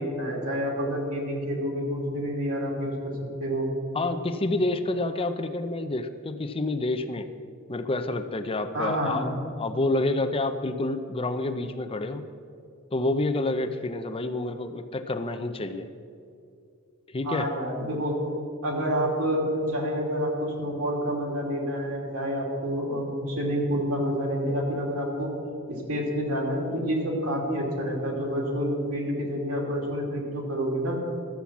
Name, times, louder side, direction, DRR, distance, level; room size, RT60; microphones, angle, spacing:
voice 1, 0.0-3.1 3.4-3.7 8.7-9.3 17.2-18.2 18.6-25.3 25.9-31.0, equal, 90° right, -1 dB, 2.7 m, -28 dB
voice 2, 3.9-7.3 7.7-9.3 9.6-12.3 12.9-15.9 17.1-17.5, left 2 dB, 25° left, 9 dB, 0.5 m, -28 dB
13.0 x 7.5 x 7.1 m, 2.4 s
head